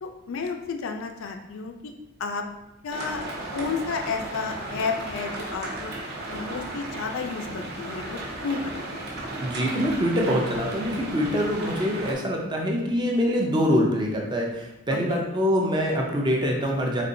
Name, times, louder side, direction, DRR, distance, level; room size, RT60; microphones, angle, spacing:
voice 1, 0.0-1.9 2.2-2.4 2.8-3.3 3.5-9.0 15.1-15.2, left 5 dB, 65° left, 5 dB, 0.4 m, -32 dB
sound 1, 2.9-12.1, right 2 dB, 45° right, 0.8 m, -35 dB
voice 2, 9.4-17.0, equal, 20° right, 0 dB, 0.5 m, -24 dB
4.2 x 3.5 x 2.6 m, 0.95 s
head